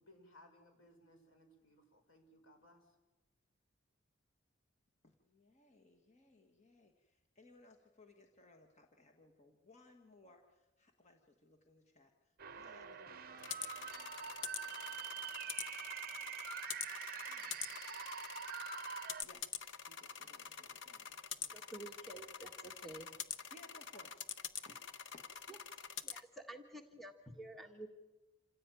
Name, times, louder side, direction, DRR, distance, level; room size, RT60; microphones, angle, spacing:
voice 1, 0.0-3.0, left 1 dB, 80° left, 4 dB, 6.0 m, -63 dB
voice 2, 5.0-13.6 17.3-17.8 19.2-21.6 23.5-24.2 24.6-25.2 27.6-27.8, left 2 dB, 35° left, 3 dB, 1.7 m, -64 dB
sound 1, 12.4-19.2, right 7 dB, 45° right, 0.7 m, -46 dB
sound 2, 13.4-26.2, left 7 dB, 60° left, 1.0 m, -46 dB
voice 3, 21.5-23.1 26.0-27.9, right 1 dB, ahead, 5 dB, 1.5 m, -50 dB
27.5 x 15.5 x 9.2 m, 1.1 s
head